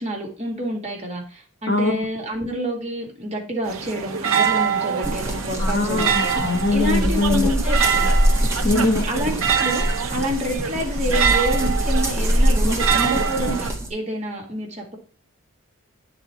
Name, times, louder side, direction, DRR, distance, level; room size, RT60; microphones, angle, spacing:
voice 1, 0.0-6.3 6.7-8.1 8.6-15.0, equal, 30° right, 0 dB, 2.0 m, -28 dB
voice 2, 1.7-2.0 5.6-7.5 8.6-9.0, left 2 dB, 50° left, 1 dB, 1.0 m, -22 dB
sound 1, 3.6-13.7, right 7 dB, 70° right, 0.9 m, -25 dB
sound 2, 5.0-13.9, equal, 10° right, 1.5 m, -23 dB
9.3 x 4.2 x 4.5 m, 0.39 s
head